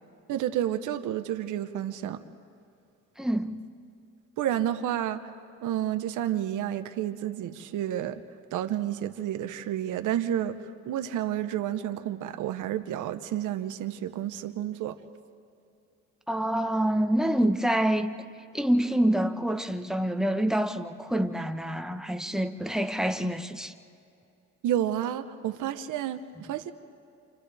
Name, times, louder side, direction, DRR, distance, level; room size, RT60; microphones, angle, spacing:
voice 1, 0.3-2.2 4.4-5.2 5.6-8.2 8.5-10.6 10.9-15.0 24.6-26.7, right 11 dB, 85° right, 1.0 m, -30 dB
voice 2, 3.2-3.6 16.3-18.1 18.5-23.7, right 1 dB, ahead, 1.1 m, -26 dB
29.5 x 28.0 x 3.5 m
cardioid pair, 90°, 30 cm